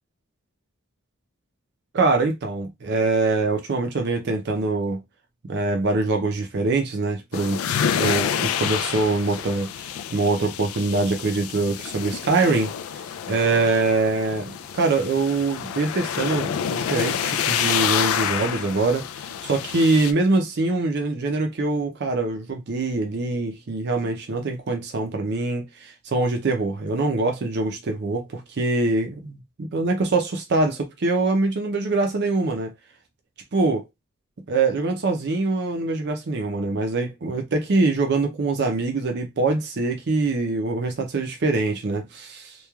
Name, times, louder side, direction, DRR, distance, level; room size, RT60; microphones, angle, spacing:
voice 1, 1.9-5.0 5.5-7.6 8.0-9.7 10.1-12.7 13.3-19.0 19.4-32.7 33.5-33.8 34.5-42.6, right 3 dB, 55° right, 0.5 m, -24 dB
sound 1, 7.3-20.1, left 8 dB, 80° left, 0.3 m, -28 dB
3.0 x 2.2 x 2.3 m
head